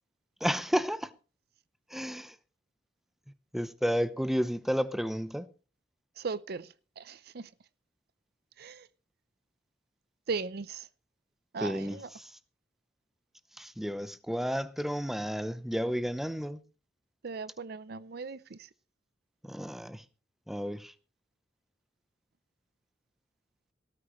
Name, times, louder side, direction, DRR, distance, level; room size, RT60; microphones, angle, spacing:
voice 1, 0.4-1.1 1.9-2.3 3.5-5.4 11.6-12.3 13.6-16.6 19.4-20.0 20.5-20.9, equal, ahead, 0.7 m, -32 dB
voice 2, 6.2-7.5 8.6-8.9 10.3-10.9 11.5-12.1 17.2-18.7, right 4 dB, 60° right, 0.6 m, -38 dB
18.0 x 12.5 x 3.1 m
head